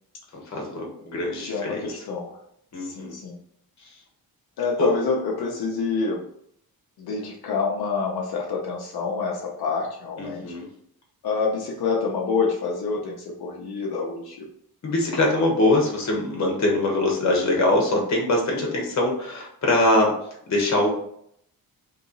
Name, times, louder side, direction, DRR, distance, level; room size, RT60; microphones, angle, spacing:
voice 1, 0.3-1.9 2.7-3.2 3.8-3.9 4.8-4.9 10.2-10.7 14.8-20.1 20.5-20.9, left 2 dB, 45° left, 0 dB, 1.1 m, -23 dB
voice 2, 1.4-2.4 2.8-3.4 4.6-6.2 7.0-10.5 11.2-14.5, left 4 dB, 80° left, -1 dB, 0.8 m, -27 dB
3.2 x 3.0 x 3.8 m, 0.70 s
wide cardioid pair, 160°, 37 cm